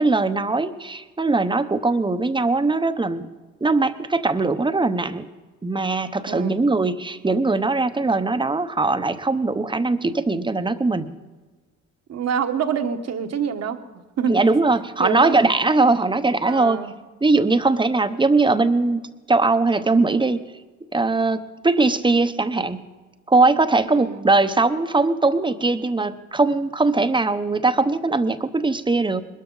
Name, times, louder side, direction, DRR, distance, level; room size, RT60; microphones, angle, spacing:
voice 1, 0.0-3.3 3.6-5.3 5.6-11.1 14.3-16.8 17.2-19.0 19.3-20.4 20.8-22.8 23.3-29.2, right 3 dB, 15° right, 10 dB, 0.9 m, -20 dB
voice 2, 12.1-13.8 14.2-14.3 15.0-15.4 16.4-16.9 23.9-24.3, right 7 dB, 60° right, 8 dB, 1.3 m, -26 dB
21.0 x 13.0 x 4.0 m, 1.3 s
cardioid pair, 90°, 30 cm